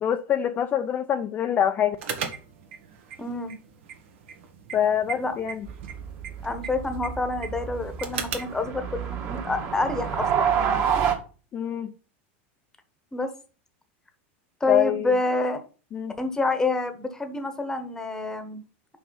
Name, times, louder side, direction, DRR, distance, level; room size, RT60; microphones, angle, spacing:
voice 1, 0.0-2.0 4.7-5.7 11.5-11.9 14.7-15.1 15.9-16.2, left 9 dB, 25° left, 0.5 m, -25 dB
sound 1, 2.0-8.6, right 7 dB, 75° right, 1.6 m, -38 dB
voice 2, 3.2-3.5 5.1-5.3 6.4-10.8 13.1-13.3 14.6-15.6 16.2-18.6, left 3 dB, 10° left, 1.1 m, -28 dB
sound 2, 5.7-11.1, right 8 dB, 40° right, 1.8 m, -28 dB
5.6 x 4.9 x 5.6 m
supercardioid pair, 140°, 7 cm